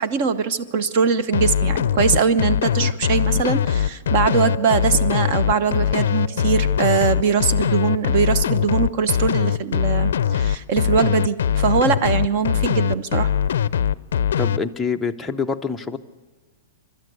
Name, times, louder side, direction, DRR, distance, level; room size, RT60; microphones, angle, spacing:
voice 1, 0.0-13.3, right 6 dB, 35° right, 14 dB, 1.0 m, -21 dB
sound 1, 1.3-14.6, left 9 dB, 75° left, 0.6 m, -21 dB
Chink clink, 4.1-8.2, right 5 dB, 75° right, 5.1 m, -40 dB
voice 2, 14.4-16.0, left 5 dB, 5° left, 3 dB, 0.6 m, -26 dB
30.0 x 12.5 x 8.2 m, 1.4 s
hypercardioid pair, 175°, 0 cm